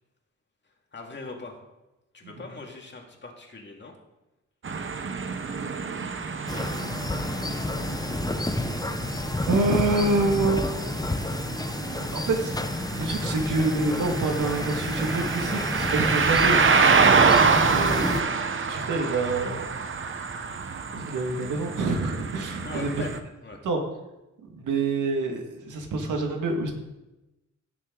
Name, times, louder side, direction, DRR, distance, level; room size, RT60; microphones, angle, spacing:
voice 1, 0.9-1.6 2.1-3.9 17.8-18.0 22.6-23.1 23.4-23.6, left 3 dB, 35° left, 1 dB, 2.2 m, -40 dB
sound 1, 4.6-23.2, right 5 dB, 40° right, 1.0 m, -27 dB
sound 2, 6.5-18.2, left 2 dB, 15° left, 0.7 m, -30 dB
voice 2, 9.5-10.7 12.1-12.5 12.9-16.6 17.5-18.2 18.6-19.7 20.9-22.9 23.6-23.8 24.6-26.7, right 2 dB, 85° right, 2 dB, 2.0 m, -26 dB
16.5 x 6.5 x 3.9 m, 1.0 s
cardioid pair, 95°, 30 cm